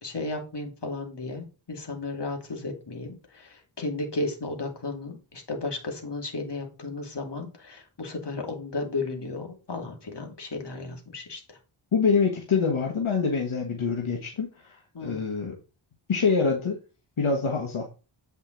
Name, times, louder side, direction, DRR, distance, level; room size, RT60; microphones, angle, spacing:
voice 1, 0.0-11.6 14.9-15.2, left 2 dB, 55° left, 2 dB, 2.6 m, -34 dB
voice 2, 11.9-15.6 16.1-16.8 17.2-17.9, left 5 dB, 75° left, 1 dB, 1.6 m, -25 dB
8.3 x 5.5 x 3.9 m, 0.33 s
wide cardioid pair, 80°, 49 cm